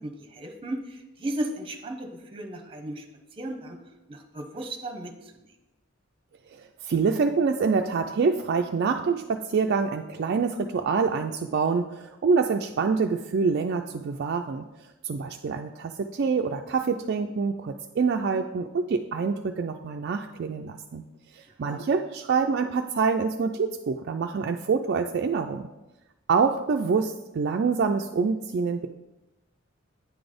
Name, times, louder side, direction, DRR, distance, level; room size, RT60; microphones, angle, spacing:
voice 1, 0.0-3.0 3.4-3.8 4.1-5.4 21.7-21.8, right 1 dB, 25° right, 5 dB, 0.9 m, -35 dB
voice 2, 6.5-14.6 15.0-21.0 21.3-25.7 26.3-28.9, right 5 dB, 50° right, 4 dB, 0.4 m, -26 dB
9.1 x 4.0 x 5.1 m, 1.0 s
head